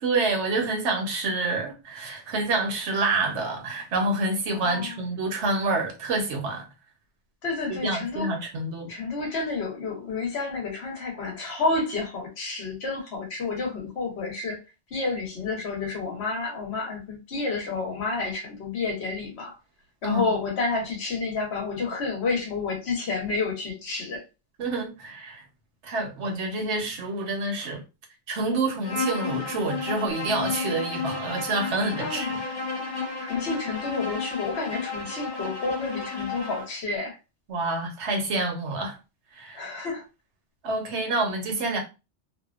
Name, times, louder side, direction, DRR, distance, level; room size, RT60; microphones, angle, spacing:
voice 1, 0.0-6.6 7.7-8.9 20.0-20.2 24.6-25.4 25.8-27.8 28.3-32.4 37.5-39.0 39.3-39.6 40.6-41.8, right 2 dB, 75° right, 1.0 m, -27 dB
voice 2, 4.5-5.0 7.4-8.3 8.9-14.6 14.9-19.6 20.0-24.2 31.9-32.4 33.2-37.2 39.5-40.0, left 3 dB, 65° left, 1.1 m, -30 dB
Bowed string instrument, 28.8-36.7, left 4 dB, 35° left, 0.4 m, -32 dB
2.7 x 2.2 x 2.4 m
omnidirectional pair, 1.2 m